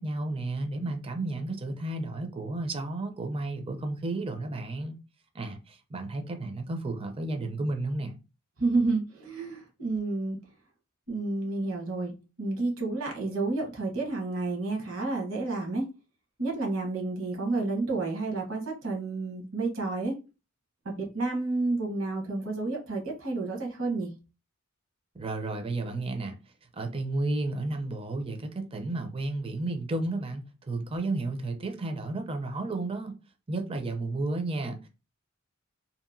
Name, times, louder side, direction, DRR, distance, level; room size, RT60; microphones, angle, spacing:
voice 1, 0.0-5.0 5.3-8.1 25.1-26.4 26.7-33.1 33.5-34.9, right 2 dB, 25° right, 0.5 m, -32 dB
voice 2, 8.6-10.4 11.1-12.1 12.4-15.9 16.4-20.1 20.8-24.1, right 3 dB, 65° right, 1.1 m, -30 dB
2.8 x 2.5 x 2.5 m
head